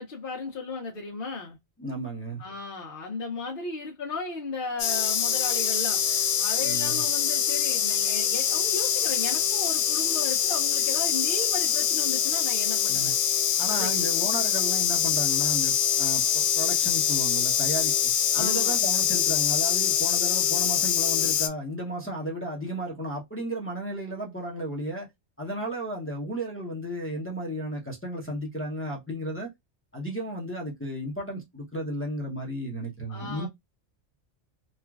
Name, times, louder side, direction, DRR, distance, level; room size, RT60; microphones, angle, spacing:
voice 1, 0.0-1.6 2.4-13.1 13.7-14.4 18.3-18.8 33.1-33.5, left 3 dB, 55° left, 0.8 m, -35 dB
voice 2, 1.8-2.4 6.6-7.1 12.9-13.1 13.6-25.1 25.4-29.5 29.9-33.5, right 1 dB, 15° left, 0.7 m, -34 dB
sound 1, 4.8-21.5, left 8 dB, 90° left, 1.0 m, -24 dB
3.1 x 2.3 x 2.3 m
omnidirectional pair, 1.3 m